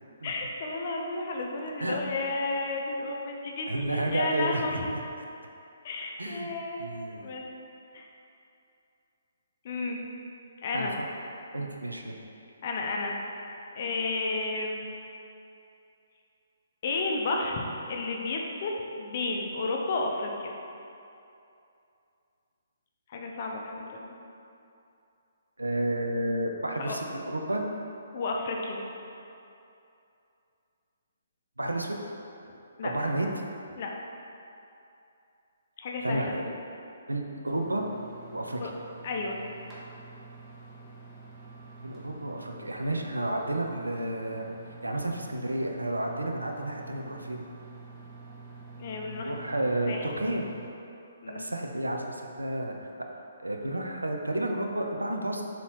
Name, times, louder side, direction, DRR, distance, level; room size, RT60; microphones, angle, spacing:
voice 1, 0.2-4.8 5.8-6.9 7.1-7.4 7.9-8.1 9.6-10.0 10.6-11.0 12.6-13.2 13.7-14.8 16.8-20.5 23.1-24.1 26.8-27.0 28.1-28.8 32.8-32.9 33.8-33.9 35.8-36.3 38.6-38.7 39.0-39.4 48.8-49.4 49.9-50.1 51.2-51.5, left 3 dB, 45° left, 0 dB, 0.5 m, -32 dB
voice 2, 3.7-4.6 6.2-6.5 6.8-7.3 10.7-11.1 11.5-12.1 25.6-27.7 31.6-32.0 32.8-33.3 36.0-36.5 37.1-37.8 38.3-38.6 41.8-44.5 44.8-47.4 49.1-50.4 51.3-52.9 53.4-55.4, right 1 dB, 90° right, 2 dB, 0.4 m, -31 dB
sound 1, 37.5-50.7, right 4 dB, 20° right, 0.6 m, -47 dB
3.9 x 2.9 x 3.0 m, 2.7 s
figure-of-eight pair, 135°, 0 cm